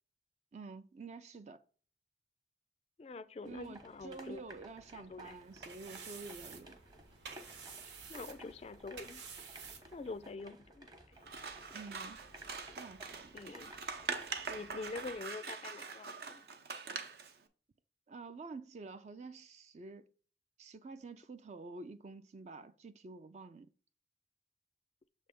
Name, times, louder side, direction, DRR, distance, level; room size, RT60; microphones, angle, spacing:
voice 1, 0.5-1.6 3.4-6.8 11.7-12.2 12.7-13.3 18.1-20.1 20.6-23.7, right 3 dB, 40° right, 0.4 m, -49 dB
voice 2, 3.0-4.4 4.9-5.4 8.1-9.2 9.9-10.9 13.3-13.7 14.5-16.4, left 3 dB, 35° left, 0.3 m, -45 dB
sound 1, 3.4-15.2, right 1 dB, 25° right, 0.9 m, -56 dB
sound 2, 5.2-10.3, right 5 dB, 90° right, 1.1 m, -51 dB
Scissors, 11.2-17.3, right 5 dB, 60° right, 0.7 m, -43 dB
6.9 x 3.3 x 5.1 m
head